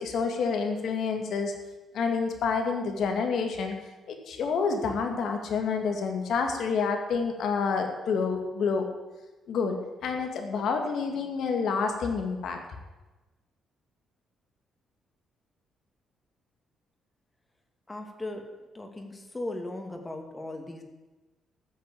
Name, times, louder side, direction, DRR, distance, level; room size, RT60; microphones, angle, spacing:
voice 1, 0.0-1.5 1.9-3.7 4.1-8.9 9.5-12.6, left 5 dB, 70° left, 4 dB, 2.3 m, -28 dB
voice 2, 17.9-18.4 18.7-20.8, left 2 dB, 20° left, 4 dB, 2.4 m, -37 dB
14.5 x 6.5 x 8.6 m, 1.2 s
cardioid pair, 90°, 0 cm